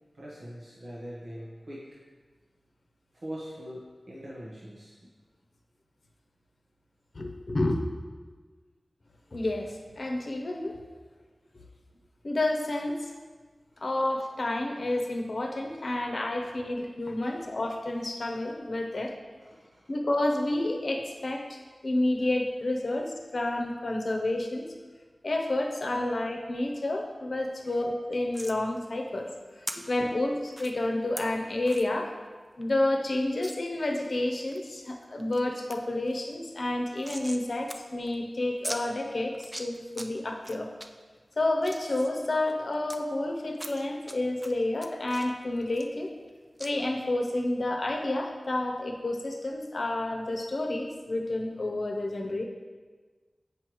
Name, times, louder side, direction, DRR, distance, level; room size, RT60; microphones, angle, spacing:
voice 1, 0.1-1.8 3.1-5.1 11.6-11.7 17.2-17.4 19.4-19.8 29.7-29.9, equal, 80° right, -7 dB, 1.1 m, -42 dB
voice 2, 7.1-7.8 9.3-10.7 12.2-13.1 13.8-19.1 19.9-24.7 25.2-29.3 29.9-32.1 32.6-40.7 41.4-46.1 46.6-52.4, left 1 dB, 70° left, 2 dB, 0.7 m, -30 dB
sound 1, 28.3-28.6 29.7-29.8 30.5-30.7 31.2-31.3 31.7-31.9 32.3-32.4 32.6-32.7 33.4-33.5 34.0-34.6 35.0-35.4 35.7-35.8 36.1-37.4 37.7-37.8 38.1-38.2 38.6-38.8 39.3-40.1 40.4-40.9 41.3-43.0 43.5-44.1 44.4-46.3 46.6-46.7, right 1 dB, 20° right, 0.5 m, -40 dB
7.8 x 5.4 x 3.0 m, 1.4 s
wide cardioid pair, 55°, 0 cm